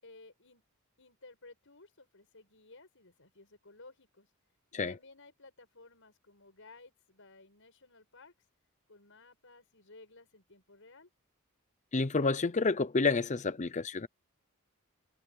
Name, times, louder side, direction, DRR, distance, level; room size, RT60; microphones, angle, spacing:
voice 1, 0.0-0.6 1.0-4.3 4.7-8.3 8.9-11.1, left 3 dB, 60° left, 7.6 m, -56 dB
voice 2, 11.9-14.1, left 4 dB, 35° left, 0.6 m, -29 dB
head